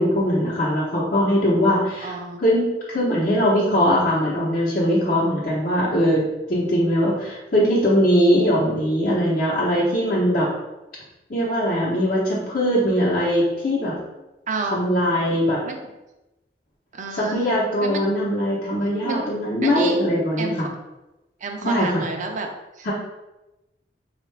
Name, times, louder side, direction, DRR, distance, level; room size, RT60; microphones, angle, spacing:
voice 1, 0.0-6.2 6.5-10.5 11.3-14.0 14.7-15.6 17.2-20.5 21.6-22.0 22.8-22.9, equal, 45° left, -9 dB, 0.9 m, -21 dB
voice 2, 2.0-2.4 14.5-14.8 15.6-15.8 16.9-17.4 17.8-18.1 19.0-19.3 19.6-20.0 20.4-20.7 21.4-22.5 22.8-22.9, right 4 dB, 45° right, 3 dB, 0.5 m, -29 dB
4.5 x 2.4 x 3.3 m, 0.98 s
head